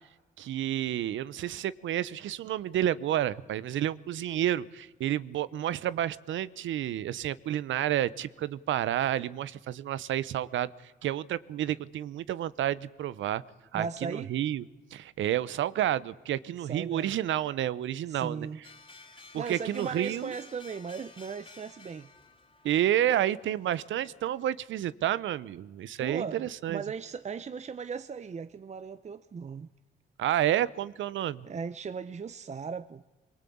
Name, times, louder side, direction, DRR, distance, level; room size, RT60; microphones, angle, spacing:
voice 1, 0.4-13.4 13.7-14.6 14.9-18.5 19.3-20.3 22.6-26.8 30.2-31.5, right 12 dB, 75° right, 0.9 m, -30 dB
voice 2, 13.7-14.3 16.6-17.2 18.1-18.6 19.3-22.1 26.0-29.7 31.4-33.0, right 5 dB, 35° right, 0.8 m, -37 dB
sound 1, 18.6-24.5, left 3 dB, 25° left, 2.7 m, -53 dB
23.0 x 23.0 x 8.7 m
cardioid pair, 90°, 20 cm